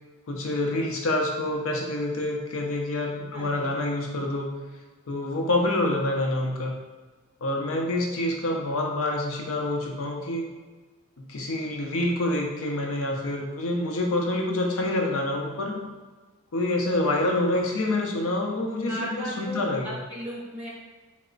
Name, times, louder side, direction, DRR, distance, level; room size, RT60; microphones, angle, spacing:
voice 1, 0.3-4.5 5.1-6.8 7.4-10.4 11.2-15.8 16.5-20.0, left 1 dB, 65° left, 1 dB, 0.6 m, -27 dB
voice 2, 3.3-3.8 18.8-20.7, equal, 5° right, -6 dB, 0.5 m, -36 dB
3.2 x 2.1 x 3.7 m, 1.3 s
head